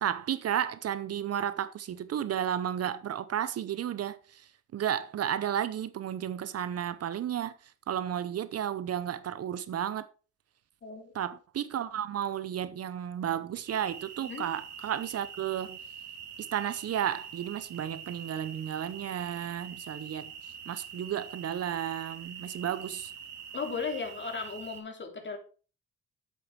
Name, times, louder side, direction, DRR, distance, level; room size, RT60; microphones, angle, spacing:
voice 1, 0.0-4.2 4.7-7.5 7.9-10.0 11.2-15.8 16.4-20.3 20.7-23.1, right 10 dB, 55° right, 0.7 m, -33 dB
voice 2, 10.8-11.1 14.2-14.5 23.5-25.4, left 5 dB, 40° left, 2.9 m, -36 dB
sound 1, 13.7-24.8, right 7 dB, 70° right, 2.5 m, -45 dB
8.1 x 7.8 x 4.7 m
cardioid pair, 90°, 30 cm